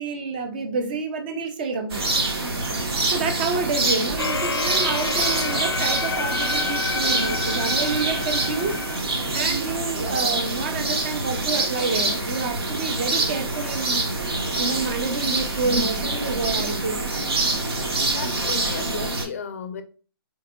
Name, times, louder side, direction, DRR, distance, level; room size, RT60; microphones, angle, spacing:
voice 1, 0.0-2.1 3.1-8.8 9.2-14.1 14.6-17.0, right 4 dB, 20° right, 0.5 m, -28 dB
sound 1, 1.9-19.2, right 2 dB, 80° right, 1.2 m, -25 dB
sound 2, 4.2-9.0, left 5 dB, 90° left, 0.5 m, -29 dB
voice 2, 18.1-19.8, left 6 dB, 35° left, 0.5 m, -34 dB
3.8 x 3.6 x 2.2 m
hypercardioid pair, 165°, 13 cm